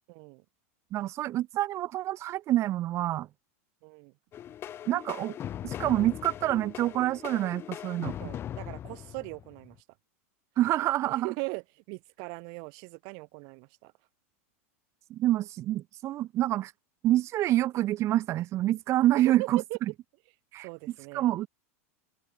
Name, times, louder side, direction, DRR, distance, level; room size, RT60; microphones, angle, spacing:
voice 1, 0.1-0.4 3.8-4.1 8.2-9.8 11.1-13.9 19.4-19.8 20.6-21.2, right 38 dB, 55° right, 1.8 m, -39 dB
voice 2, 0.9-3.3 4.9-5.4 5.6-8.2 10.6-11.3 15.1-16.7 17.0-19.6 20.5-20.7 21.1-21.5, right 14 dB, 35° right, 1.7 m, -27 dB
sound 1, 4.3-9.8, left 10 dB, 30° left, 4.4 m, -40 dB
open air
supercardioid pair, 130°, 8 cm